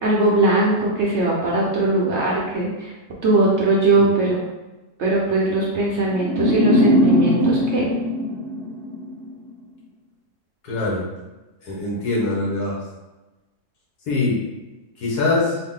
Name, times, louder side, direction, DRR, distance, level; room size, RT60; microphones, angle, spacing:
voice 1, 0.0-2.9 3.2-4.4 5.0-7.9, right 2 dB, 60° right, -4 dB, 0.8 m, -20 dB
sound 1, 6.1-9.3, left 1 dB, 85° right, 1.1 m, -20 dB
voice 2, 10.6-11.0 11.6-12.8 14.1-14.4 15.0-15.6, left 2 dB, 80° left, -4 dB, 1.5 m, -23 dB
3.9 x 2.1 x 3.7 m, 1.1 s
omnidirectional pair, 1.7 m